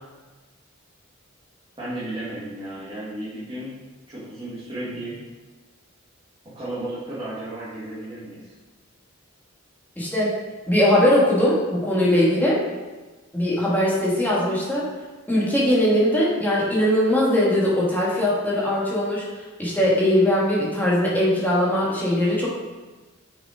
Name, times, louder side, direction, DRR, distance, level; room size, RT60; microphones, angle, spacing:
voice 1, 1.8-3.7 4.1-5.2 6.5-8.4, right 1 dB, 25° right, -10 dB, 2.1 m, -33 dB
voice 2, 10.0-10.4 10.7-12.6 13.3-14.9 15.3-19.3 19.6-22.5, left 1 dB, 10° left, -6 dB, 2.2 m, -20 dB
6.9 x 5.8 x 5.1 m, 1.2 s
head